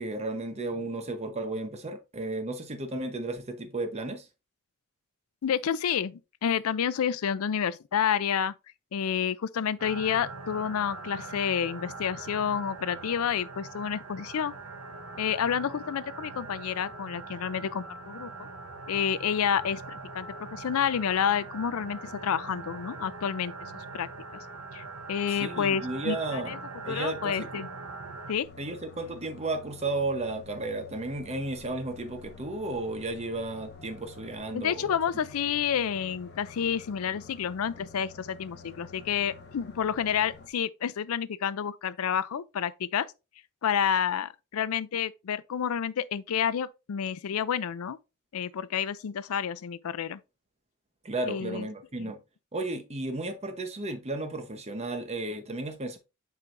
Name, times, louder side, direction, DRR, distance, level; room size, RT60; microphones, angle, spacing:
voice 1, 0.0-4.3 25.3-26.6 26.8-27.6 28.6-34.9 51.0-52.2 52.5-56.0, right 2 dB, 30° right, 0.9 m, -33 dB
voice 2, 5.4-8.5 8.9-14.5 15.2-18.5 18.9-23.5 23.9-24.1 24.7-24.8 25.1-26.6 26.9-27.7 28.3-28.5 34.5-43.1 43.6-48.0 48.3-50.2 51.3-51.6 52.0-52.1, left 8 dB, 75° left, 0.4 m, -29 dB
sound 1, 9.8-28.3, right 3 dB, 85° right, 0.9 m, -42 dB
sound 2, 28.4-40.5, left 4 dB, 50° left, 1.0 m, -49 dB
7.6 x 4.8 x 2.5 m
head